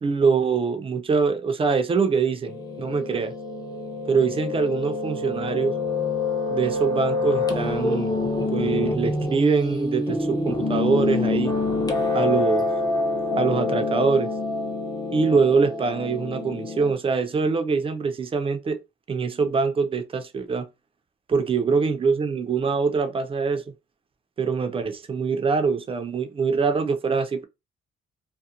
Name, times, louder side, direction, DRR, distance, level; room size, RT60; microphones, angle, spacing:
voice 1, 0.0-3.3 4.1-5.7 6.5-8.2 8.5-11.5 12.1-12.7 13.4-14.3 15.1-18.8 19.1-20.7 21.3-23.6 24.4-27.5, right 5 dB, 30° right, 0.4 m, -24 dB
Piano, 2.5-16.9, left 3 dB, 20° left, 0.6 m, -26 dB
2.4 x 2.1 x 2.8 m
cardioid pair, 90°, 20 cm